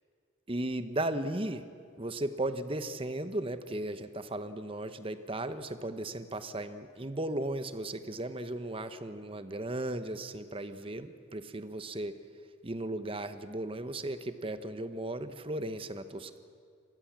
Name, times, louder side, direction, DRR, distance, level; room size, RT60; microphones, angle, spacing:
voice 1, 0.5-1.7 2.0-12.1 12.6-16.4, right 1 dB, 30° right, 11 dB, 0.9 m, -36 dB
25.5 x 19.5 x 7.4 m, 2.2 s
head